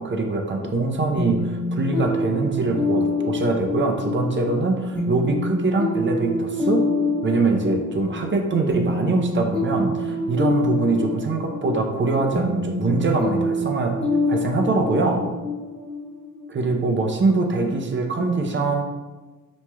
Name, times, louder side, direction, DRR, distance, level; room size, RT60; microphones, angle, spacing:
voice 1, 0.0-6.8 7.2-14.0 14.3-15.2 16.5-18.8, right 3 dB, 35° right, 3 dB, 0.6 m, -23 dB
sound 1, 1.2-16.7, left 2 dB, 5° left, 1.3 m, -26 dB
5.7 x 3.1 x 2.3 m, 1.2 s
cardioid pair, 90°, 34 cm